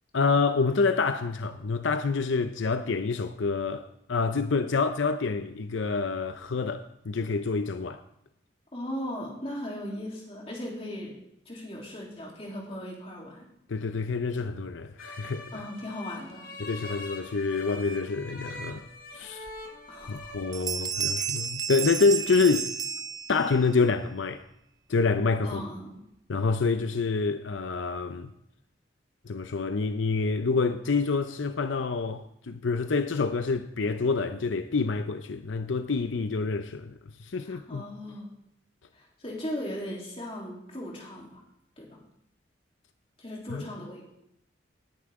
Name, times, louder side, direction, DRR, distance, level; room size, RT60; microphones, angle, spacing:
voice 1, 0.1-8.0 13.7-15.4 16.6-18.9 19.1-19.5 20.1-22.7 23.3-24.4 24.9-25.6 26.3-28.3 29.2-36.9 37.2-37.8 43.5-43.6, left 4 dB, 85° left, 0.6 m, -27 dB
voice 2, 8.7-11.1 11.4-13.4 15.5-16.5 19.9-20.4 20.8-20.9 25.4-26.0 37.4-38.3 38.9-41.4 41.8-42.0 43.2-44.0, left 1 dB, 30° left, 3.3 m, -38 dB
sound 1, 15.0-20.6, left 2 dB, 45° left, 1.5 m, -43 dB
Bell, 19.5-19.6 20.0-20.3 20.5-23.7, right 6 dB, 20° right, 0.5 m, -32 dB
18.0 x 9.5 x 3.7 m
head